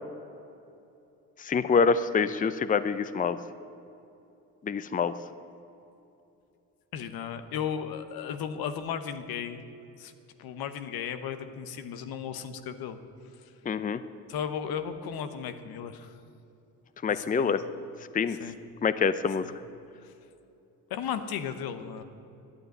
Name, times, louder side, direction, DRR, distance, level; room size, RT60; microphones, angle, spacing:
voice 1, 1.4-3.4 4.6-5.1 13.7-14.0 17.0-17.6 18.1-18.4 18.8-19.4, left 5 dB, 25° left, 13 dB, 0.5 m, -26 dB
voice 2, 6.9-9.6 10.0-10.1 10.4-13.0 14.3-16.2 17.1-17.5 18.3-18.5 19.4-19.5 20.1-20.2 20.9-22.0, left 8 dB, 80° left, 10 dB, 1.0 m, -35 dB
11.0 x 9.3 x 9.0 m, 2.8 s
supercardioid pair, 70°, 36 cm